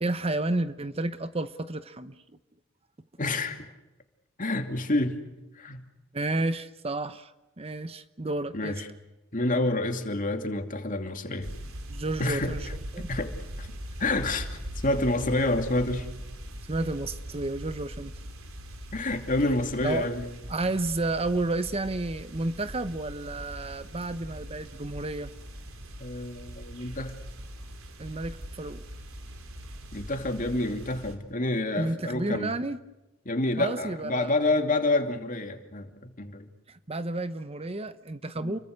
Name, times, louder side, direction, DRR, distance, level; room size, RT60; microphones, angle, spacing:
voice 1, 0.0-2.1 6.1-7.3 7.6-8.8 11.9-12.7 12.9-13.1 16.7-18.1 19.8-20.1 20.5-25.3 28.0-28.8 31.7-32.8 33.6-34.3 36.7-38.6, right 2 dB, 30° right, 12 dB, 0.9 m, -31 dB
voice 2, 3.2-3.6 4.4-5.2 5.6-5.8 8.5-8.9 9.3-11.5 12.2-13.3 13.6-13.7 14.0-14.6 14.8-16.1 18.9-20.3 26.0-27.1 29.9-32.5 33.2-36.5 38.4-38.6, left 2 dB, 40° left, 6 dB, 2.6 m, -28 dB
sound 1, 11.4-31.1, equal, 80° right, 3.7 m, -41 dB
29.5 x 23.5 x 6.6 m, 1.0 s
head